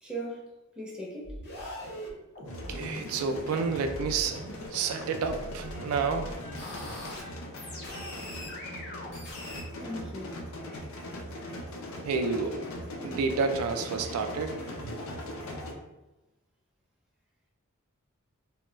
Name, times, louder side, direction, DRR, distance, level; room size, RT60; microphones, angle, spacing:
voice 1, 0.0-1.4 9.8-10.4, right 1 dB, 5° right, -4 dB, 0.5 m, -39 dB
sound 1, 1.2-4.7 5.0-7.2 7.5-9.6, left 1 dB, 45° left, 0.8 m, -42 dB
sound 2, 2.4-15.7, left 1 dB, 65° left, 0.5 m, -40 dB
voice 2, 2.7-4.4 4.7-6.5 12.0-12.7 13.0-14.9, right 5 dB, 80° right, 9 dB, 0.3 m, -30 dB
2.2 x 2.0 x 3.8 m, 0.99 s
head